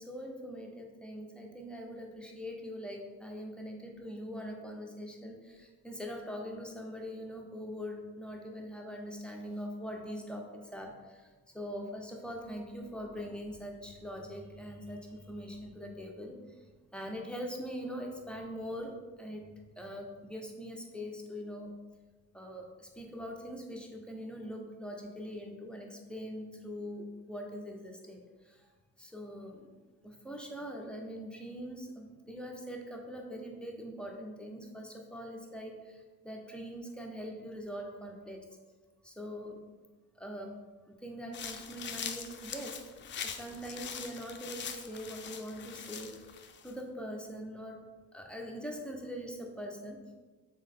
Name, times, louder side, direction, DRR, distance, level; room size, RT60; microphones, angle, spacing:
voice 1, 0.0-10.4 10.7-16.7 16.9-19.4 19.8-21.7 22.3-28.7 29.0-29.7 30.0-38.5 39.0-39.6 40.2-40.6 40.8-42.8 43.2-46.4 46.6-47.8 48.1-50.0, equal, 5° left, 1 dB, 0.7 m, -42 dB
sound 1, 41.3-46.7, left 7 dB, 40° left, 0.4 m, -42 dB
3.7 x 3.4 x 3.7 m, 1.3 s
cardioid pair, 90°, 30 cm